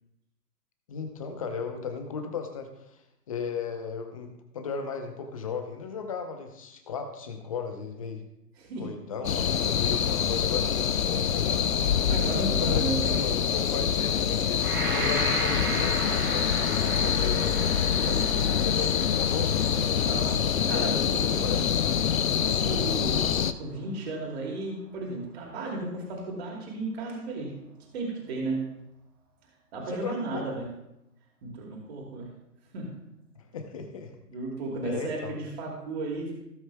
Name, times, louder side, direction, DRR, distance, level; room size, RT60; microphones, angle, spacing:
voice 1, 0.9-2.9 3.3-8.2 8.8-11.7 12.2-17.6 18.3-19.5 20.5-21.9 29.9-30.5 33.4-34.1 34.8-35.3, left 5 dB, 20° left, 6 dB, 0.8 m, -36 dB
sound 1, 9.2-23.5, left 8 dB, 55° left, 0.7 m, -25 dB
voice 2, 12.1-13.1 17.4-17.6 18.0-18.3 20.1-21.5 22.4-27.5 27.9-28.6 29.7-30.6 31.4-32.3 32.7-32.9 34.3-36.4, right 3 dB, 40° right, -2 dB, 2.7 m, -34 dB
Gong, 14.6-22.9 23.4-23.5, right 2 dB, 15° right, 0.6 m, -36 dB
16.5 x 7.7 x 2.3 m, 0.86 s
hypercardioid pair, 145°, 50 cm